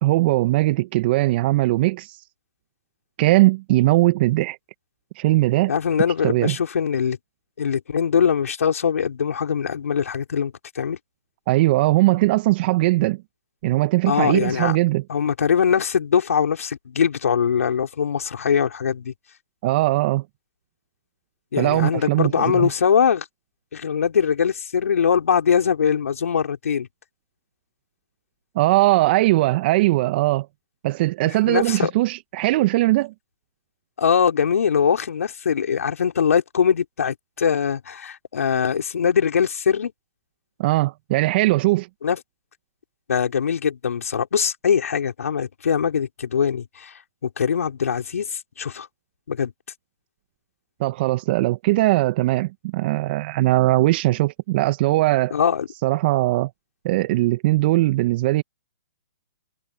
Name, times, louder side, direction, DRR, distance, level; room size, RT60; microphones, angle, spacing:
voice 1, 0.0-2.2 3.2-4.6 5.1-5.7 6.2-6.6 11.5-13.2 13.6-15.0 19.6-20.2 21.6-22.7 28.5-30.5 30.8-33.1 40.6-41.9 50.8-55.3 55.8-56.5 56.8-58.4, right 18 dB, 40° right, 1.0 m, -20 dB
voice 2, 5.7-7.2 7.6-11.0 14.1-14.8 15.1-19.1 21.5-23.2 23.7-26.9 31.4-31.9 34.0-39.9 42.0-42.2 43.1-46.9 47.2-48.9 49.3-49.5 55.3-55.7, left 7 dB, 70° left, 5.1 m, -22 dB
hypercardioid pair, 130°, 8 cm